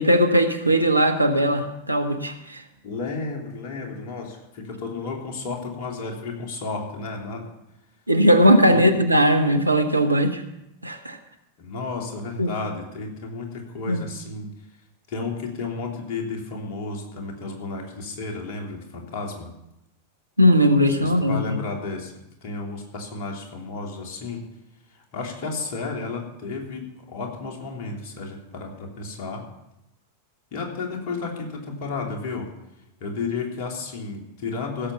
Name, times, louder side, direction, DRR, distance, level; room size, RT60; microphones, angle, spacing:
voice 1, 0.0-2.6 8.1-10.4 10.8-11.2 12.4-12.5 13.9-14.0 20.4-21.6, equal, 85° right, 6 dB, 1.1 m, -19 dB
voice 2, 2.8-7.4 8.7-8.9 11.6-14.5 15.1-19.5 21.0-22.1 22.4-24.4 24.9-29.5 30.5-32.5 33.0-34.9, left 4 dB, 45° left, 1 dB, 2.9 m, -32 dB
16.0 x 7.0 x 6.9 m, 0.88 s
figure-of-eight pair, 90°, 0 cm